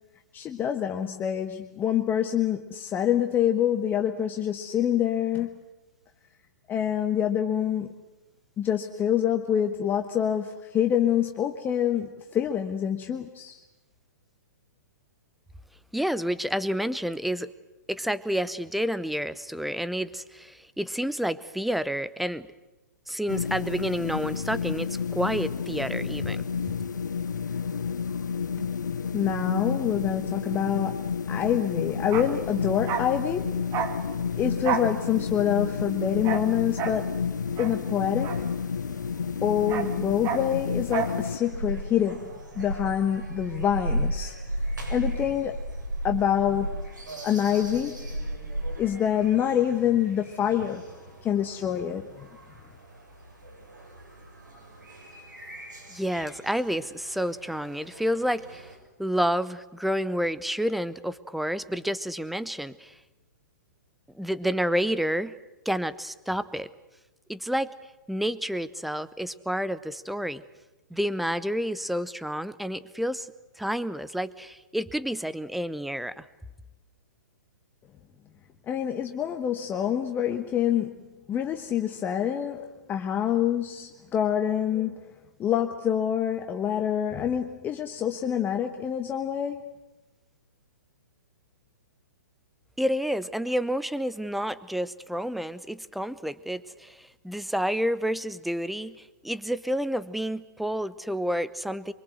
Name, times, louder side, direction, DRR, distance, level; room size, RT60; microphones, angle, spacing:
voice 1, 0.3-5.6 6.7-7.9 8.6-13.6 29.1-33.6 34.3-37.1 37.6-38.4 39.4-44.3 44.9-45.6 46.0-46.8 47.2-48.1 48.8-50.8 51.2-52.3 78.7-80.9 81.3-85.1 85.4-89.7, left 9 dB, 20° left, 5 dB, 1.2 m, -26 dB
voice 2, 15.9-17.5 17.9-22.5 23.1-26.4 55.9-58.7 59.0-62.9 64.1-65.3 65.6-66.7 67.3-67.7 68.1-70.4 70.9-73.3 73.6-76.3 92.8-99.0 99.2-101.9, equal, ahead, 16 dB, 0.8 m, -29 dB
sound 1, 23.3-41.4, left 6 dB, 75° left, 0.8 m, -31 dB
Bark, 32.0-39.0 39.3-41.2 41.5-41.6, right 7 dB, 30° right, 2.0 m, -33 dB
sound 2, 41.2-58.8, right 1 dB, 85° right, 7.1 m, -36 dB
24.5 x 23.0 x 7.9 m, 1.1 s
figure-of-eight pair, 120°, 10 cm